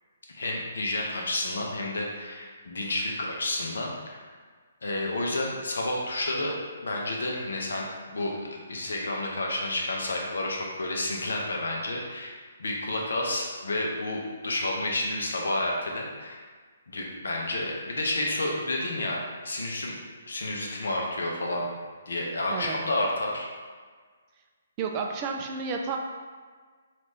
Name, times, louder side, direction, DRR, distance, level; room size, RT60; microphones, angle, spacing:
voice 1, 0.3-4.2 4.8-6.5 6.8-16.4 16.9-19.9 20.3-21.6 22.1-23.5, left 1 dB, 70° left, -1 dB, 0.7 m, -30 dB
voice 2, 24.8-26.0, right 5 dB, 30° right, 2 dB, 0.3 m, -31 dB
3.0 x 2.4 x 3.5 m, 1.5 s
figure-of-eight pair, 135°, 0 cm